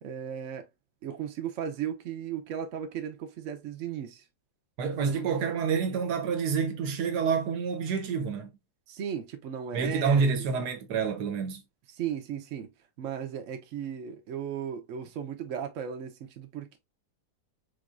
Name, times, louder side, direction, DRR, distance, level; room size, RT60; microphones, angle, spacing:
voice 1, 0.0-0.7 1.0-4.2 8.9-10.4 12.0-12.7 13.0-16.8, right 8 dB, 55° right, 1.0 m, -36 dB
voice 2, 4.8-8.5 9.7-11.6, right 5 dB, 75° right, 1.3 m, -28 dB
4.0 x 3.3 x 2.4 m
omnidirectional pair, 1.8 m